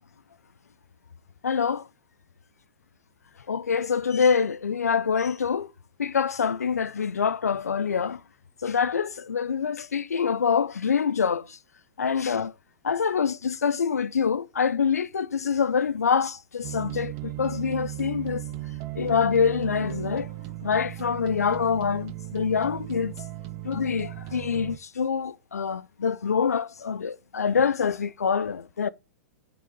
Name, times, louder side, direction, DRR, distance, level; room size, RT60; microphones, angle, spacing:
voice 1, 1.4-1.9 3.5-5.7 6.0-8.2 8.6-11.6 12.0-12.5 12.8-18.4 18.9-20.3 20.6-23.1 23.6-28.9, left 6 dB, 90° left, 0.5 m, -25 dB
sound 1, 16.6-24.8, right 17 dB, 45° right, 0.7 m, -36 dB
5.7 x 5.5 x 6.5 m
hypercardioid pair, 110°, 8 cm